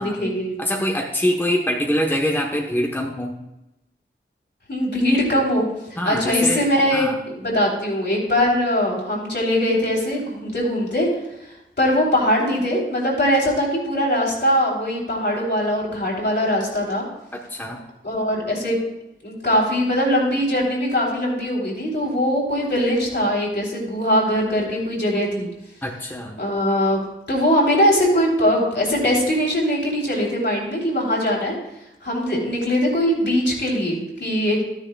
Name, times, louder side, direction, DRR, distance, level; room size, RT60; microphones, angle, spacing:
voice 1, 0.0-0.6 4.7-11.1 11.8-17.1 18.0-18.8 19.2-25.5 26.4-27.0 27.3-31.6 32.0-34.7, equal, 55° left, -3 dB, 3.3 m, -21 dB
voice 2, 0.6-3.4 6.0-7.2 17.3-17.8 25.8-26.4, equal, 10° left, 0 dB, 1.1 m, -24 dB
12.5 x 10.0 x 2.3 m, 0.90 s
wide cardioid pair, 55°, 21 cm